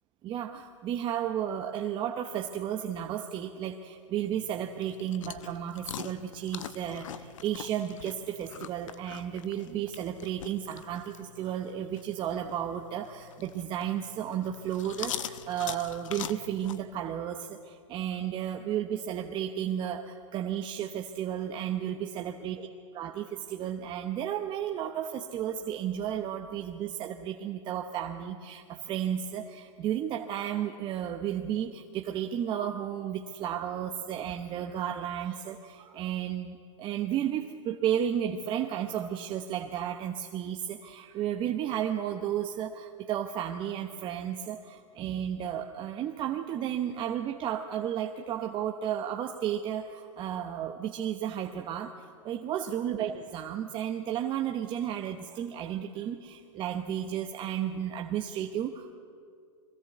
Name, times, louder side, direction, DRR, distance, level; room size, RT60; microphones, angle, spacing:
voice 1, 0.2-58.9, right 10 dB, 30° right, 4 dB, 0.9 m, -33 dB
sound 1, 4.2-16.8, left 9 dB, 75° left, 1.0 m, -44 dB
22.0 x 16.5 x 8.2 m, 2.2 s
hypercardioid pair, 130°, 16 cm